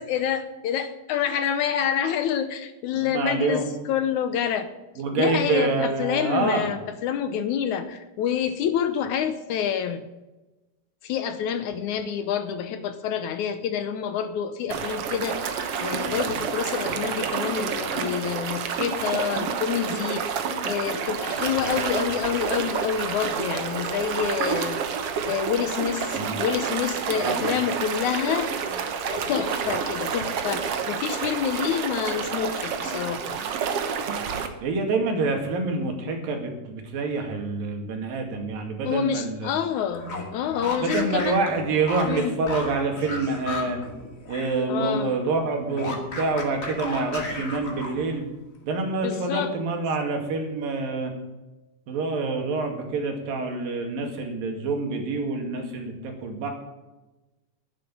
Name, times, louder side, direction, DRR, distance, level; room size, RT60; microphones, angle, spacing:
voice 1, 0.0-4.7 5.2-10.0 11.0-20.2 20.6-24.8 25.3-28.5 29.0-33.4 38.8-41.4 42.1-42.4 44.7-45.1 49.0-49.5, left 8 dB, 70° left, 10 dB, 2.0 m, -27 dB
voice 2, 2.9-3.7 5.0-6.7 26.1-26.4 27.1-27.4 34.6-39.5 40.8-43.8 44.3-48.2 48.6-51.1 51.9-56.5, right 3 dB, 85° right, 3 dB, 4.0 m, -27 dB
sound 1, 14.7-34.5, right 6 dB, 60° right, 1.7 m, -29 dB
sound 2, 39.9-44.6 44.9-48.2, left 2 dB, 30° left, 2.0 m, -34 dB
11.0 x 10.5 x 7.5 m, 1.1 s
omnidirectional pair, 3.9 m